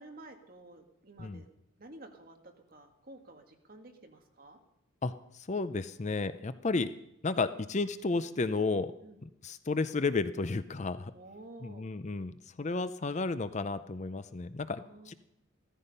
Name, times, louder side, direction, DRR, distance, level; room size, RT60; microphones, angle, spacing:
voice 1, 0.0-1.5 1.8-4.6 9.0-9.2 11.1-11.9 14.7-15.1, right 2 dB, 40° right, 3 dB, 2.1 m, -52 dB
voice 2, 5.0-6.9 7.2-8.9 9.2-11.1 11.6-15.1, left 3 dB, 35° left, 12 dB, 0.5 m, -33 dB
15.5 x 14.0 x 5.5 m, 0.85 s
head